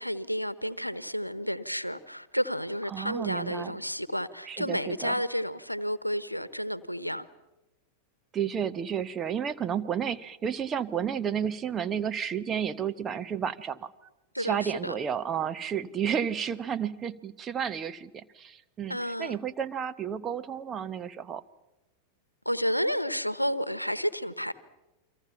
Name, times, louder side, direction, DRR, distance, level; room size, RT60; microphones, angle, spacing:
voice 1, 0.0-7.3 14.3-14.9 18.9-19.4 22.4-24.5, equal, 90° left, 1.0 m, -31 dB
voice 2, 2.9-3.7 4.5-5.1 8.3-13.9 14.4-21.4, right 8 dB, 25° right, 1.0 m, -32 dB
30.0 x 24.0 x 5.8 m
figure-of-eight pair, 90°, 0 cm